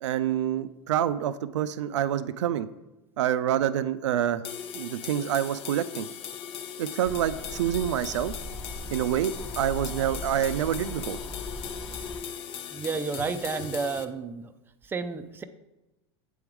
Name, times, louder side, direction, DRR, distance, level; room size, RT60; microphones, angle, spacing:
voice 1, 0.0-2.7 3.2-4.4 4.7-6.1 6.8-8.3 8.9-11.2, right 10 dB, 85° right, 12 dB, 0.4 m, -27 dB
sound 1, 4.4-14.1, left 8 dB, 40° left, 0.5 m, -39 dB
sound 2, 7.0-12.2, left 1 dB, 10° left, 0.9 m, -39 dB
voice 2, 12.7-14.5 14.8-15.4, right 4 dB, 15° right, 8 dB, 0.4 m, -31 dB
7.7 x 3.6 x 4.6 m, 0.99 s
hypercardioid pair, 110°, 15 cm